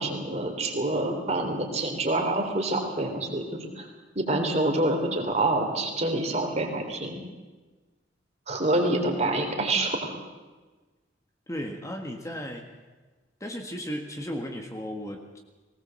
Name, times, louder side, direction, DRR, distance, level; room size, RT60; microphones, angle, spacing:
voice 1, 0.0-3.9 4.1-7.2 8.5-10.2, right 2 dB, 35° right, 3 dB, 3.3 m, -27 dB
voice 2, 11.5-12.7 13.4-15.4, equal, 15° left, 3 dB, 1.6 m, -35 dB
19.0 x 18.5 x 7.6 m, 1.3 s
head